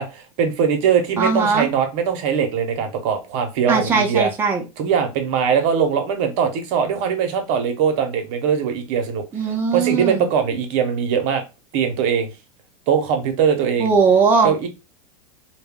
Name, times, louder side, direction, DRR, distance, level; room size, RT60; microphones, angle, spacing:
voice 1, 0.0-4.3 4.8-11.4 11.7-12.3 12.9-13.9 14.4-14.7, right 7 dB, 55° right, 0.7 m, -21 dB
voice 2, 1.2-1.7 3.7-4.6 9.3-10.3 13.8-14.7, right 5 dB, 10° right, 0.5 m, -19 dB
2.2 x 2.1 x 3.5 m
supercardioid pair, 120°, 18 cm